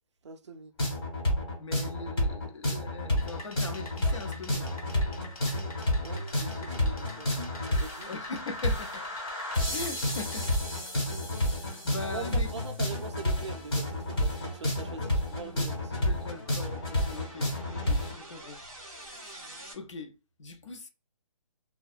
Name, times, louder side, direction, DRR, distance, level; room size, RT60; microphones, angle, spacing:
voice 1, 0.2-0.7 6.0-7.3 7.6-8.1 12.1-15.8, right 4 dB, 55° right, 0.4 m, -42 dB
sound 1, 0.8-18.1, left 1 dB, 40° left, 1.2 m, -30 dB
voice 2, 1.6-4.9 8.1-9.1 9.7-10.6 11.3-12.5 15.6-18.6 18.9-19.2 19.7-20.9, left 3 dB, 55° left, 0.5 m, -41 dB
sound 2, 3.2-10.5, left 2 dB, 80° left, 1.0 m, -48 dB
sound 3, 12.8-19.7, right 1 dB, 5° left, 0.4 m, -50 dB
2.5 x 2.2 x 2.4 m
hypercardioid pair, 175°, 18 cm